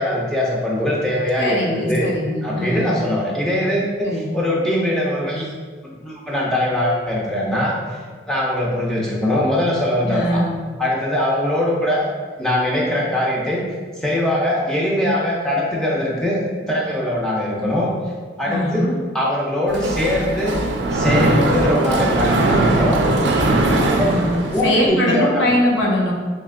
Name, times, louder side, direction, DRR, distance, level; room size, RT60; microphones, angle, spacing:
voice 1, 0.0-2.1 2.4-5.5 5.8-8.0 8.3-10.4 10.8-12.1 12.4-13.6 14.0-16.4 16.7-17.9 18.4-18.9 19.1-20.6 20.9-23.0 23.8-24.0 24.5-25.5, left 1 dB, 5° left, -5 dB, 0.5 m, -21 dB
voice 2, 1.4-2.9 4.0-4.3 10.0-10.5 18.4-19.0 23.9-26.1, left 1 dB, 80° left, -2 dB, 0.8 m, -21 dB
Mechanisms, 19.7-24.9, right 2 dB, 70° right, 0.4 m, -19 dB
3.2 x 2.7 x 3.6 m, 1.5 s
head